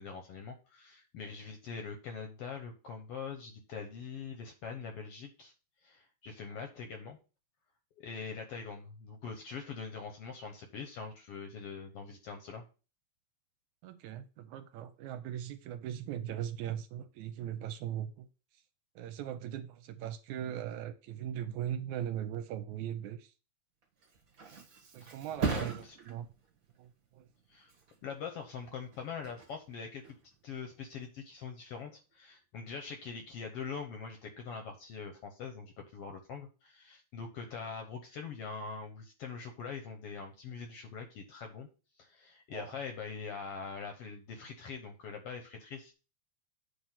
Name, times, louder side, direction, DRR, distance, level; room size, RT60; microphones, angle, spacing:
voice 1, 0.0-5.5 5.8-7.2 8.0-12.6 25.0-26.0 27.5-27.7 28.0-30.2 30.4-41.7 42.0-45.9, left 5 dB, 65° left, 1.6 m, -43 dB
voice 2, 13.8-18.3 19.0-23.3 24.8-26.3 26.8-27.3 42.5-42.8, right 10 dB, 80° right, 1.9 m, -39 dB
Thump thud, 23.8-31.3 31.7-32.1, right 5 dB, 45° right, 1.3 m, -41 dB
9.4 x 3.4 x 5.8 m
omnidirectional pair, 3.6 m